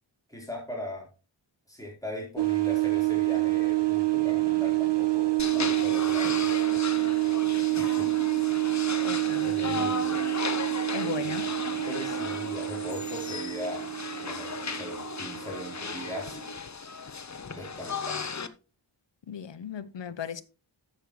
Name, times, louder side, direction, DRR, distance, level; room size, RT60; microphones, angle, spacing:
voice 1, 0.3-1.1 1.7-6.5 7.8-8.2 9.4-10.2 11.8-13.9 14.2-16.4 17.5-18.3, left 1 dB, 5° left, 4.1 m, -39 dB
sound 1, 2.4-16.6, right 22 dB, 60° right, 1.2 m, -28 dB
sound 2, 5.4-18.5, left 5 dB, 35° left, 0.8 m, -36 dB
voice 2, 9.0-9.9 10.9-11.4 19.3-20.4, left 7 dB, 65° left, 0.8 m, -37 dB
12.0 x 7.8 x 3.1 m
wide cardioid pair, 60°, 46 cm